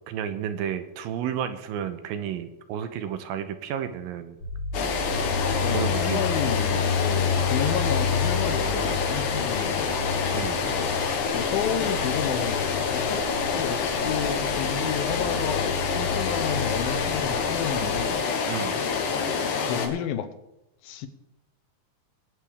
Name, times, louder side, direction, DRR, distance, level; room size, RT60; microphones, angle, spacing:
voice 1, 0.1-4.4 5.7-6.3 10.3-10.6 18.5-18.8, right 9 dB, 85° right, 9 dB, 2.5 m, -32 dB
sound 1, 4.4-18.1, left 4 dB, 40° left, 3.5 m, -31 dB
sound 2, 4.7-19.9, left 5 dB, 65° left, 2.6 m, -27 dB
voice 2, 5.6-10.0 11.3-13.2 13.5-18.2 19.4-20.3 20.8-21.1, left 9 dB, 85° left, 10 dB, 2.7 m, -31 dB
21.0 x 8.4 x 3.5 m, 0.92 s
omnidirectional pair, 4.1 m